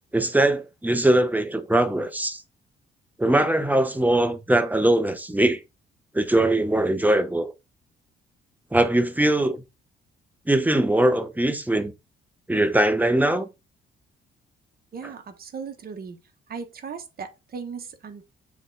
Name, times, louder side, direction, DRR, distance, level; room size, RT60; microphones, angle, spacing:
voice 1, 0.1-2.4 3.2-5.6 6.1-7.5 8.7-9.6 10.5-11.9 12.5-13.5, right 1 dB, 10° right, 1.0 m, -21 dB
voice 2, 14.9-16.2 16.5-18.3, right 6 dB, 50° right, 1.4 m, -37 dB
7.1 x 3.5 x 4.0 m
cardioid pair, 90°, 20 cm